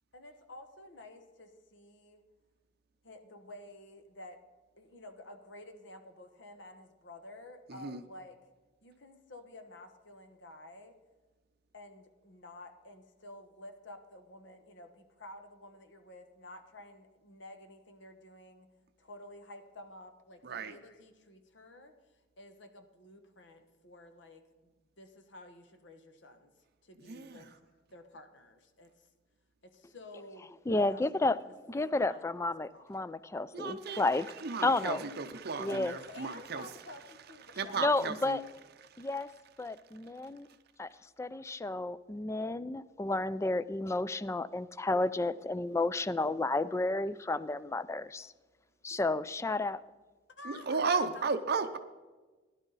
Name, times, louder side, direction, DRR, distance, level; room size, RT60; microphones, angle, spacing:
voice 1, 0.1-2.2 3.0-4.4 4.8-8.4 8.8-11.0 11.7-18.7 19.0-22.0 22.4-26.5 26.8-27.5 27.9-29.1 29.6-31.5 31.9-32.2 32.7-33.1 34.0-34.1 35.7-37.9 38.3-38.5 50.4-51.3, left 1 dB, 70° left, 7 dB, 1.2 m, -51 dB
voice 2, 7.7-8.0 20.4-20.7 27.0-27.5 33.5-36.7 37.5-38.4 38.9-39.1 50.4-51.8, right 4 dB, 55° right, 9 dB, 0.6 m, -35 dB
voice 3, 30.7-31.4 31.7-34.3 34.6-35.0 35.6-35.9 37.8-38.4 39.0-39.3 39.6-40.5 40.8-40.9 41.2-48.3 48.8-49.8, left 2 dB, 15° left, 16 dB, 0.3 m, -31 dB
16.5 x 11.0 x 4.0 m, 1.3 s
head